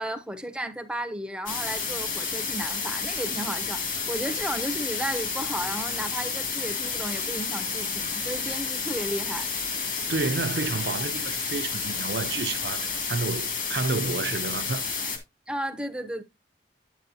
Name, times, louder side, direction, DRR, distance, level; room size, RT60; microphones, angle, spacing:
voice 1, 0.0-9.5 15.5-16.2, right 1 dB, 5° right, 0.6 m, -33 dB
sound 1, 1.5-15.2, left 5 dB, 50° left, 1.9 m, -30 dB
voice 2, 10.1-14.8, right 3 dB, 65° right, 0.6 m, -30 dB
9.0 x 7.9 x 2.7 m
head